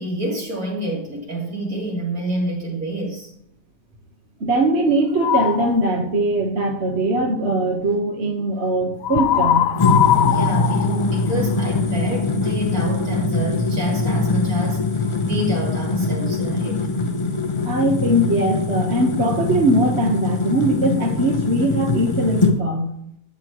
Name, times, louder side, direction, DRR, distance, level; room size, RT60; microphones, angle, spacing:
voice 1, 0.0-3.3 10.3-16.8, right 1 dB, 60° right, -2 dB, 3.3 m, -27 dB
voice 2, 4.4-9.7 17.6-22.9, right 1 dB, 45° right, 1 dB, 1.4 m, -21 dB
sound 1, 5.2-5.8 9.0-11.8, left 11 dB, 70° left, 0.9 m, -20 dB
sound 2, 9.8-22.6, left 3 dB, 30° left, 0.6 m, -22 dB
12.5 x 9.7 x 3.0 m, 0.72 s
omnidirectional pair, 1.7 m